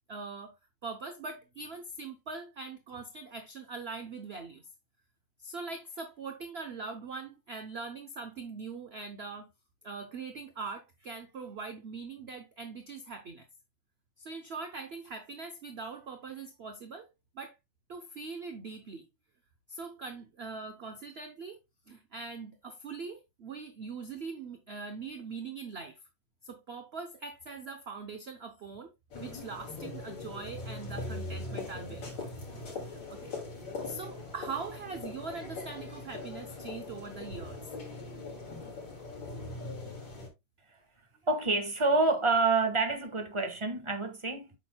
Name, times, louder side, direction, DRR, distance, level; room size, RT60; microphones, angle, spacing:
voice 1, 0.1-0.5 0.8-4.7 5.4-9.5 9.8-13.5 14.2-17.1 17.3-17.5 17.9-19.1 19.7-21.6 21.9-26.0 26.4-28.9 29.2-32.2 32.8-33.3 33.8-37.8 39.4-39.5, right 4 dB, 50° right, 0.7 m, -42 dB
sound 1, 29.1-40.3, left 2 dB, 80° left, 3.5 m, -41 dB
voice 2, 41.3-44.5, right 3 dB, 20° right, 1.2 m, -27 dB
8.8 x 6.0 x 2.2 m
omnidirectional pair, 2.0 m